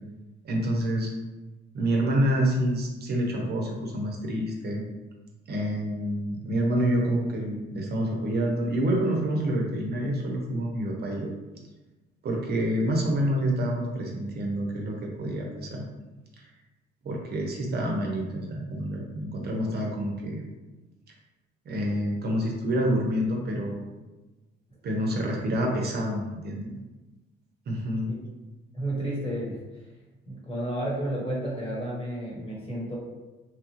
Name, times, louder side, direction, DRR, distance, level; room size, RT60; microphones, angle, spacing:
voice 1, 0.4-1.1 1.7-4.8 5.5-11.3 12.2-15.8 16.4-16.5 17.0-20.4 21.7-23.8 24.8-26.8 27.7-28.1, right 1 dB, 55° right, 0 dB, 0.7 m, -27 dB
voice 2, 28.7-29.6 30.3-33.0, right 1 dB, 30° left, -5 dB, 1.2 m, -31 dB
3.1 x 2.3 x 3.0 m, 1.1 s
cardioid pair, 90°, 20 cm